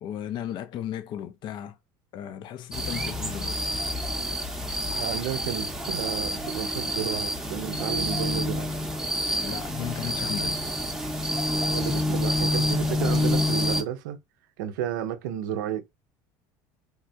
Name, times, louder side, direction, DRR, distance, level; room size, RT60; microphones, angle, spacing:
voice 1, 0.0-1.8 2.1-3.6 9.4-10.6, left 10 dB, 50° left, 0.4 m, -35 dB
sound 1, 2.7-13.8, left 1 dB, 5° right, 0.6 m, -28 dB
voice 2, 4.9-8.7 10.4-10.5 11.7-14.2 14.6-15.8, right 10 dB, 90° right, 0.5 m, -32 dB
3.4 x 2.2 x 2.6 m
supercardioid pair, 105°, 10 cm